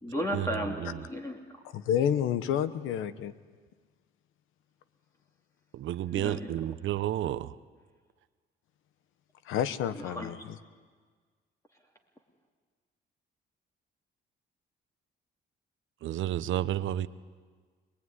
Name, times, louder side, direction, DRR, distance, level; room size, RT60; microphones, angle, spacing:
voice 1, 0.0-1.4 6.1-6.8 9.9-10.4, equal, 15° left, 1 dB, 2.7 m, -35 dB
voice 2, 1.7-3.3 9.5-10.6, left 9 dB, 90° left, 13 dB, 1.1 m, -29 dB
voice 3, 5.8-7.5 16.0-17.1, right 12 dB, 75° right, 13 dB, 0.9 m, -30 dB
26.0 x 20.5 x 9.7 m, 1.6 s
cardioid pair, 90°, 20 cm